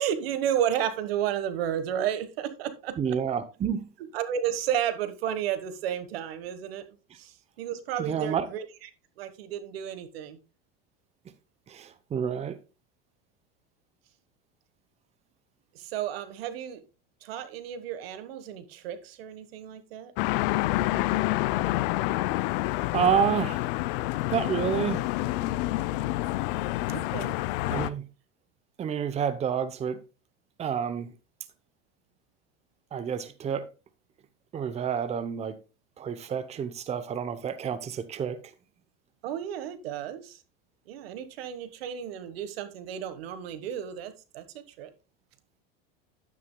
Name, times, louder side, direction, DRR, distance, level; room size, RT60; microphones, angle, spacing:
voice 1, 0.0-3.0 4.1-6.8 7.2-8.6 9.2-10.4 15.7-16.8 17.2-20.1 26.9-27.4 39.2-40.4 40.9-44.9, right 10 dB, 85° right, 1.5 m, -32 dB
voice 2, 3.0-3.9 8.0-8.5 11.7-12.6 22.6-22.7 22.9-23.7 24.3-25.1 27.7-28.0 28.8-30.0 30.6-31.1 32.9-33.7 34.5-35.6 36.0-38.4, right 8 dB, 20° right, 0.7 m, -29 dB
sound 1, 20.2-27.9, left 17 dB, 65° left, 0.6 m, -28 dB
11.0 x 9.7 x 2.2 m
supercardioid pair, 125°, 29 cm